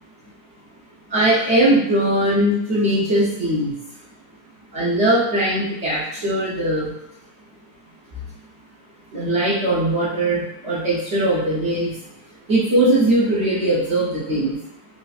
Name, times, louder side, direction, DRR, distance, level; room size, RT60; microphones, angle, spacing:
voice 1, 1.1-3.7 4.7-6.9 9.1-11.9 12.5-14.6, right 1 dB, 50° right, -7 dB, 0.9 m, -20 dB
4.0 x 2.5 x 2.4 m, 0.75 s
omnidirectional pair, 1.7 m